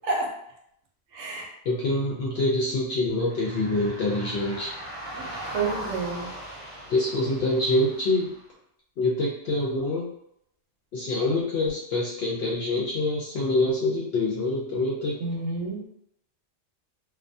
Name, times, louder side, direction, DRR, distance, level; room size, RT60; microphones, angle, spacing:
voice 1, 1.1-1.5 5.1-6.3 15.2-15.8, right 3 dB, 85° right, 0 dB, 0.9 m, -30 dB
voice 2, 1.7-4.7 6.9-8.3 9.0-10.1 10.9-15.2, left 2 dB, 65° left, -4 dB, 0.7 m, -25 dB
sound 1, 3.2-8.4, right 1 dB, 35° right, 0.7 m, -39 dB
2.3 x 2.2 x 2.6 m, 0.74 s
omnidirectional pair, 1.2 m